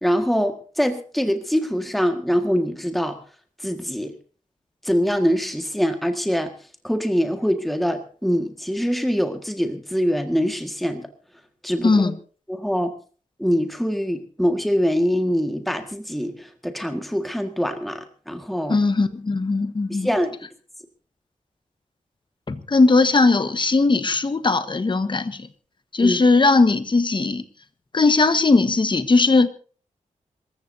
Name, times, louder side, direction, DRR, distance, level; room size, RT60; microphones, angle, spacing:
voice 1, 0.0-3.2 3.6-4.1 4.8-6.5 6.8-11.1 11.6-12.0 12.5-12.9 13.4-18.8 19.9-20.4 26.0-26.2, equal, ahead, 6 dB, 1.8 m, -23 dB
voice 2, 11.8-12.1 18.7-20.1 22.5-25.5 25.9-27.4 27.9-29.5, left 3 dB, 35° left, 10 dB, 1.3 m, -18 dB
26.5 x 14.5 x 2.8 m, 0.40 s
wide cardioid pair, 90°, 13 cm